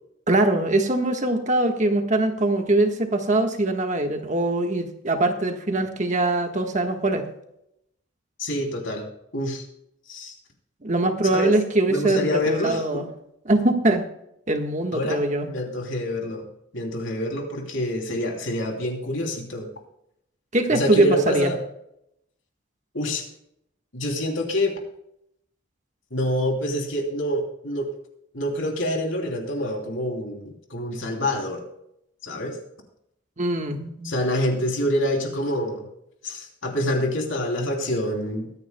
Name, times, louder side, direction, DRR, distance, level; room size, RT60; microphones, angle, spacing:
voice 1, 0.3-7.2 10.8-13.0 13.4-14.0 14.5-15.5 20.5-21.5 33.4-34.1, right 2 dB, 40° right, 5 dB, 1.4 m, -22 dB
voice 2, 8.4-9.1 9.3-9.7 10.1-10.3 11.3-11.5 11.9-13.0 14.9-16.4 16.7-19.7 20.7-21.6 22.9-23.2 23.9-24.7 26.1-27.9 28.3-31.6 32.2-32.6 34.0-35.9 36.2-38.5, left 1 dB, 80° left, 2 dB, 3.0 m, -26 dB
22.5 x 9.7 x 2.2 m, 0.77 s
head